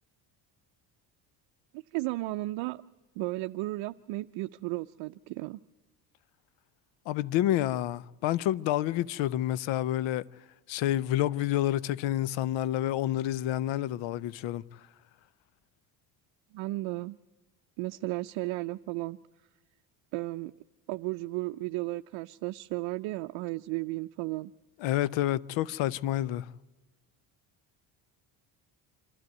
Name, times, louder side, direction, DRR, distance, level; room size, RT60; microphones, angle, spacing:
voice 1, 1.7-2.8 3.2-5.6 16.5-17.2 17.8-19.2 20.1-20.5 20.9-24.5, right 20 dB, 75° right, 0.6 m, -34 dB
voice 2, 7.1-10.2 10.7-14.6 24.8-26.5, left 13 dB, 75° left, 0.7 m, -29 dB
26.5 x 12.5 x 9.4 m
cardioid pair, 105°, 46 cm